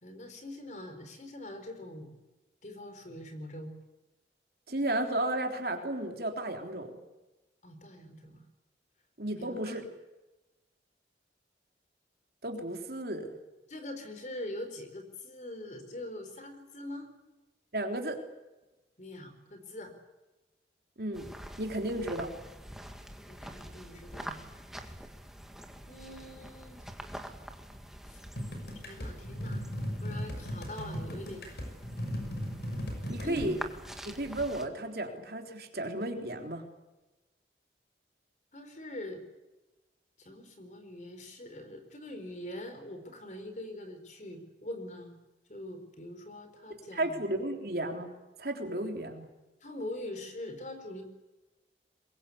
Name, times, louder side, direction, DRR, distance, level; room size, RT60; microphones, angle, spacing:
voice 1, 0.0-2.1 2.6-3.7 7.6-8.4 9.4-9.8 13.7-17.1 19.0-19.9 23.3-24.4 25.9-26.9 28.1-28.3 28.7-29.6 30.0-31.5 33.2-33.6 38.5-39.2 40.2-45.2 45.5-47.2 49.6-51.0, left 1 dB, 40° left, 8 dB, 4.2 m, -43 dB
voice 2, 4.7-6.9 9.2-9.8 12.4-13.3 17.7-18.2 21.0-21.3 21.6-22.3 33.1-33.6 34.1-36.6 46.9-48.1 48.4-49.2, right 1 dB, 55° right, 3 dB, 3.5 m, -33 dB
sound 1, 21.1-34.6, equal, ahead, 1.8 m, -46 dB
sound 2, 28.4-33.5, equal, 65° left, 6.2 m, -37 dB
24.0 x 22.0 x 8.5 m, 1.1 s
head